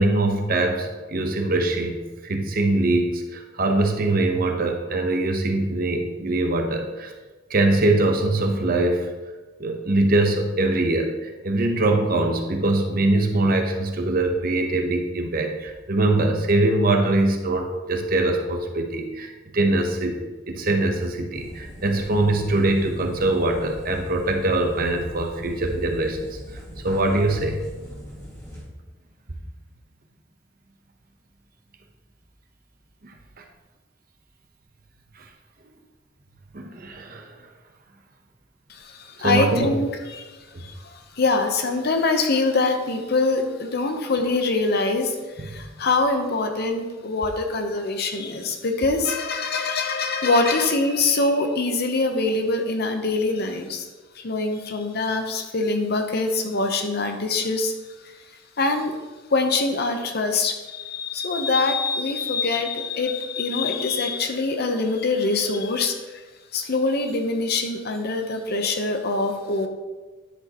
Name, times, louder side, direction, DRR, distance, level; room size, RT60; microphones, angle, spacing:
voice 1, 0.0-7.1 7.5-9.1 9.6-20.2 20.5-26.4 26.8-27.6 36.5-37.3 39.2-39.7 45.4-45.5, right 2 dB, 50° right, 4 dB, 0.9 m, -22 dB
sound 1, 21.3-28.6, equal, 15° left, 1.9 m, -40 dB
voice 2, 38.7-40.3 40.6-40.7 41.2-53.9 54.2-57.7 58.6-58.9 59.3-66.0 66.5-69.7, left 3 dB, 55° left, 5 dB, 0.8 m, -24 dB
10.5 x 6.3 x 2.9 m, 1.2 s
head